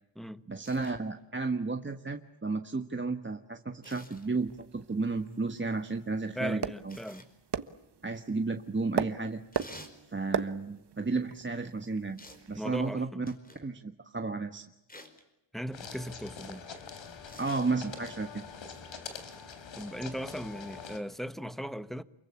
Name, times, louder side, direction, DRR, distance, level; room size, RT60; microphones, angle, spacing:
voice 1, 0.5-7.0 8.0-9.4 10.1-12.2 12.5-13.2 13.6-14.7 17.4-18.4, right 3 dB, 25° right, 1.4 m, -33 dB
sound 1, 0.6-1.0 3.8-4.3 6.9-7.3 9.5-10.0 12.2-12.5 13.3-13.7 14.9-15.2 17.2-17.7 19.1-19.3, left 1 dB, 20° left, 4.8 m, -50 dB
sound 2, 4.1-12.9, right 7 dB, 60° right, 1.4 m, -39 dB
voice 2, 6.4-7.3 12.6-13.2 15.5-16.6 19.8-22.0, equal, ahead, 1.2 m, -38 dB
sound 3, 15.7-21.0, left 5 dB, 80° left, 3.9 m, -44 dB
29.0 x 23.0 x 8.6 m
wide cardioid pair, 90°, 45 cm